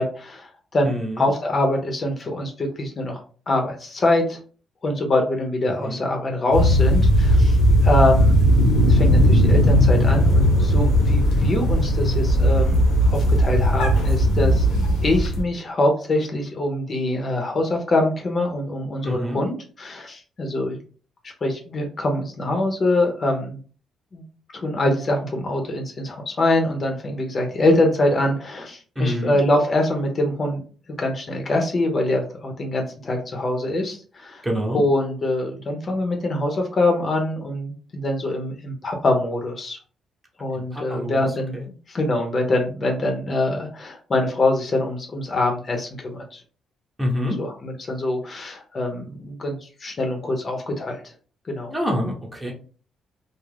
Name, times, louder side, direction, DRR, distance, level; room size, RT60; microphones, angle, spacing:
voice 1, 0.0-4.4 4.8-8.4 8.8-14.7 15.0-20.8 21.2-23.6 24.1-24.2 24.5-30.6 30.9-34.4 34.7-39.8 40.4-41.6 41.9-46.4 47.4-51.0 51.5-51.7, left 2 dB, 40° left, 3 dB, 0.7 m, -24 dB
voice 2, 0.8-1.3 5.6-6.0 19.0-19.4 28.9-29.4 34.4-34.8 40.5-41.2 41.5-41.7 47.0-47.4 51.7-52.5, equal, 15° right, -1 dB, 0.8 m, -26 dB
sound 1, 6.5-15.4, equal, 85° left, 0.9 m, -17 dB
2.3 x 2.0 x 3.3 m, 0.40 s
cardioid pair, 90°, 0 cm